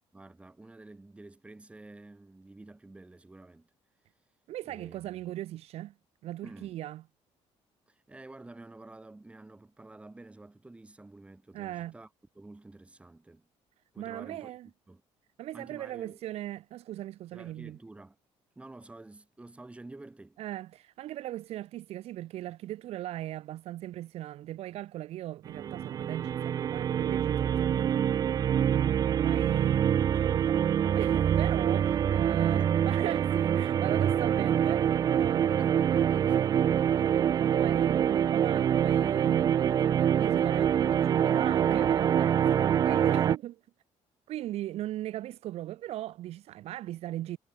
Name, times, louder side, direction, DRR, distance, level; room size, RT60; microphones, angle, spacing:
voice 1, 0.1-3.7 4.6-5.4 6.4-6.7 7.9-12.1 12.3-13.5 13.9-14.5 14.9-15.0 15.5-16.2 17.3-18.2 18.6-20.4 32.0-32.7 35.4-36.8 41.6-42.0 43.0-43.3, right 2 dB, 10° right, 6.3 m, -49 dB
voice 2, 4.5-5.9 6.2-7.0 11.5-11.9 14.0-14.7 15.4-17.8 20.4-28.4 28.7-35.7 36.9-39.9 40.2-43.5 44.3-47.4, right 14 dB, 65° right, 1.2 m, -38 dB
sound 1, 25.5-43.4, right 9 dB, 35° right, 0.3 m, -25 dB
cardioid pair, 155°, 11 cm